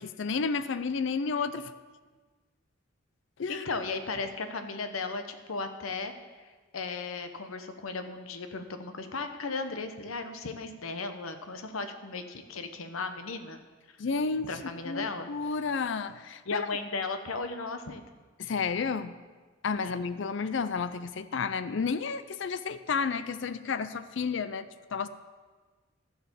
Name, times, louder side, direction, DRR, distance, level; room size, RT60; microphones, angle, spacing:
voice 1, 0.0-1.7 3.4-3.7 14.0-14.5 14.8-16.7 18.4-19.1 19.6-24.7 24.9-25.1, left 5 dB, 60° left, 13 dB, 0.4 m, -31 dB
voice 2, 3.5-13.6 13.9-14.0 14.4-15.3 16.5-18.0 19.8-20.1, left 3 dB, 85° left, 8 dB, 0.9 m, -36 dB
14.5 x 4.8 x 7.0 m, 1.4 s
head